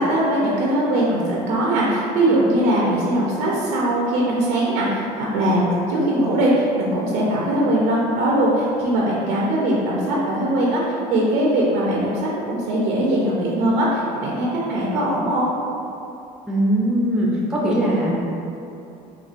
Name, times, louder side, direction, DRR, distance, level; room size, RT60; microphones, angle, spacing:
voice 1, 0.0-15.5, right 1 dB, 85° right, -5 dB, 0.6 m, -21 dB
voice 2, 16.5-18.1, right 1 dB, 5° right, -5 dB, 0.4 m, -20 dB
4.3 x 2.4 x 2.5 m, 2.8 s
cardioid pair, 160°, 15 cm